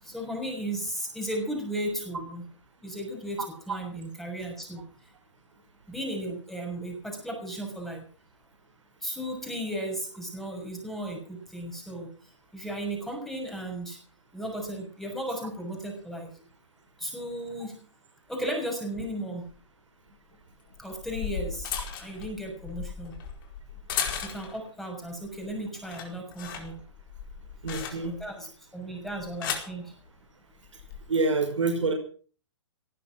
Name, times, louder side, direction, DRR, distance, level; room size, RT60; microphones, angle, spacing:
voice 1, 0.0-2.4 2.8-4.8 5.9-8.0 9.0-12.1 12.5-14.0 14.3-16.3 17.0-17.8 18.3-19.4 20.8-21.7 22.0-23.1 24.2-26.8 28.0-28.5 28.7-29.9, right 1 dB, ahead, 2 dB, 6.2 m, -35 dB
sound 1, 19.5-19.6 20.7-24.7 25.1-25.5 25.7-28.3 29.1-29.8 30.7-31.0, left 8 dB, 45° left, 4.7 m, -36 dB
voice 2, 27.6-28.1 31.1-31.9, right 3 dB, 85° right, 3 dB, 5.8 m, -26 dB
18.0 x 12.0 x 6.3 m, 0.42 s
hypercardioid pair, 140°, 15 cm